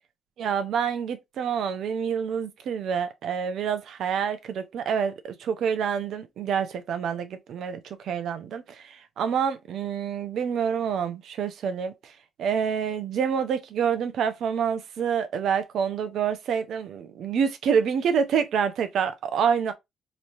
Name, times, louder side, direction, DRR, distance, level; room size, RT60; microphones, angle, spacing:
voice 1, 0.4-12.1 12.4-19.7, right 7 dB, 70° right, 0.8 m, -27 dB
4.1 x 3.2 x 2.7 m
supercardioid pair, 65°, 0 cm